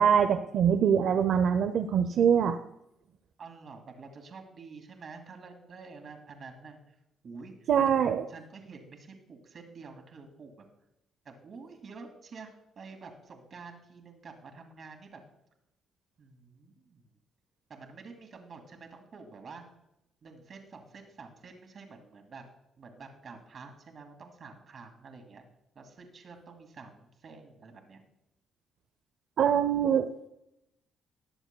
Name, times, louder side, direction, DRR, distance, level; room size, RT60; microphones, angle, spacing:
voice 1, 0.0-2.6 7.7-8.2 29.4-30.1, right 8 dB, 70° right, 7 dB, 0.5 m, -23 dB
voice 2, 3.4-6.9 7.2-7.5 7.8-10.6 11.3-15.2 16.2-17.0 17.7-19.6 20.2-22.4 22.8-25.4 25.8-28.0, right 4 dB, 50° right, 4 dB, 2.1 m, -48 dB
20.5 x 7.1 x 2.2 m, 0.85 s
cardioid pair, 90°, 0 cm